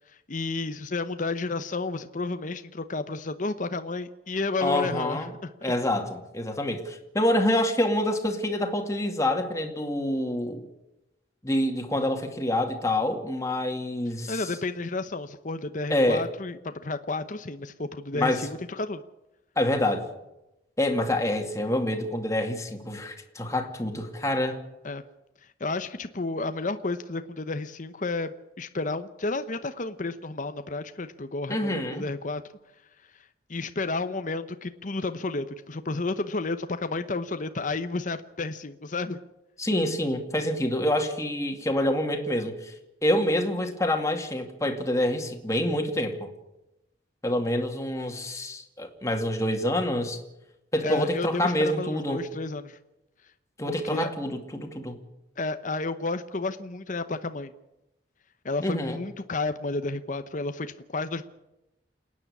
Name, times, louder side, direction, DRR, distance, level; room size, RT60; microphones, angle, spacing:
voice 1, 0.3-5.5 14.3-19.0 24.8-25.0 25.6-32.4 33.5-39.2 50.8-52.8 53.7-54.1 55.4-57.5 58.4-61.2, left 3 dB, 45° left, 9 dB, 0.9 m, -31 dB
voice 2, 4.6-5.3 5.6-10.7 11.4-14.5 15.9-16.3 18.1-18.5 19.6-20.1 20.8-24.6 31.5-32.1 39.6-42.7 43.0-46.3 47.2-50.2 50.7-52.2 53.6-55.0 58.6-59.0, left 1 dB, 15° left, 3 dB, 2.4 m, -27 dB
28.5 x 9.8 x 9.8 m, 0.94 s
head